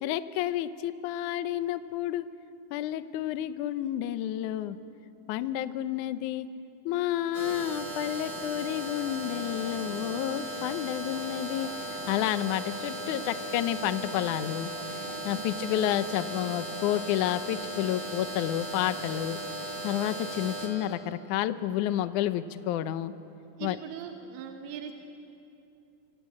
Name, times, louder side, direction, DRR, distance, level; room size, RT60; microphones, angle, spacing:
voice 1, 0.0-2.3 2.7-4.8 5.3-6.5 6.9-14.7 15.3-19.4 19.8-23.1 23.6-23.8, left 12 dB, 75° left, 11 dB, 1.8 m, -30 dB
sound 1, 7.3-20.7, right 1 dB, 25° right, 4.8 m, -37 dB
Bark, 9.0-16.0 16.3-16.5, right 2 dB, 60° right, 7.5 m, -53 dB
voice 2, 15.3-15.9 23.6-24.9, right 8 dB, 85° right, 3 dB, 3.3 m, -41 dB
26.0 x 25.5 x 8.6 m, 2.7 s
omnidirectional pair, 4.5 m